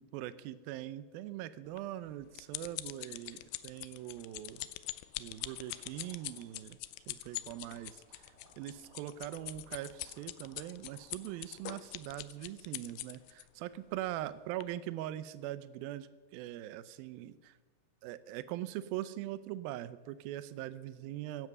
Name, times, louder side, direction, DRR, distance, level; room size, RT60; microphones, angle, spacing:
voice 1, 0.1-4.7 5.2-6.8 7.1-17.6 18.0-21.5, right 13 dB, 75° right, 15 dB, 2.4 m, -42 dB
sound 1, 1.8-13.4 14.1-14.3 14.6-14.7, left 17 dB, 80° left, 2.5 m, -43 dB
sound 2, 5.3-12.0, right 1 dB, 20° right, 4.1 m, -64 dB
16.0 x 12.0 x 6.7 m, 1.3 s
omnidirectional pair, 4.6 m